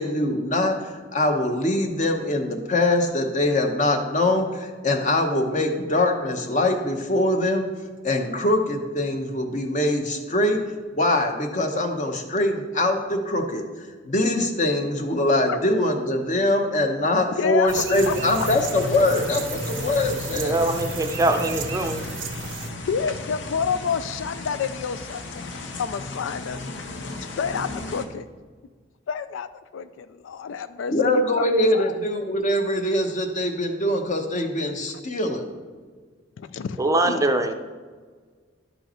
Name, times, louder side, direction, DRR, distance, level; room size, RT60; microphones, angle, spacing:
voice 1, 0.0-7.7 8.0-10.6 10.9-20.5 30.9-35.5, left 1 dB, 40° left, 5 dB, 1.0 m, -23 dB
voice 2, 17.4-18.2 22.9-25.5 25.8-26.6 27.4-28.3 29.1-29.5 29.7-31.4 31.7-31.9 36.4-37.4, left 6 dB, 85° left, 13 dB, 0.4 m, -29 dB
sound 1, 17.7-22.7, right 7 dB, 85° right, 0.7 m, -35 dB
sound 2, 17.9-28.1, left 3 dB, 65° left, 0.8 m, -34 dB
voice 3, 20.3-22.0 36.8-37.5, right 2 dB, 15° right, 6 dB, 0.5 m, -23 dB
11.0 x 5.5 x 4.4 m, 1.5 s
head